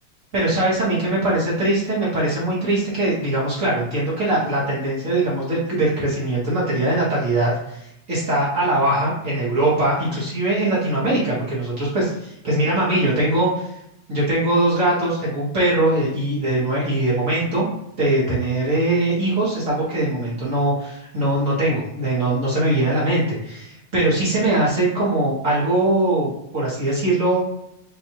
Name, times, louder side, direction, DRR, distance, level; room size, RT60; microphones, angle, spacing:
voice 1, 0.3-13.7 14.1-17.6 18.0-27.4, right 1 dB, 50° right, -7 dB, 1.0 m, -21 dB
6.3 x 2.4 x 2.8 m, 0.80 s
omnidirectional pair, 3.4 m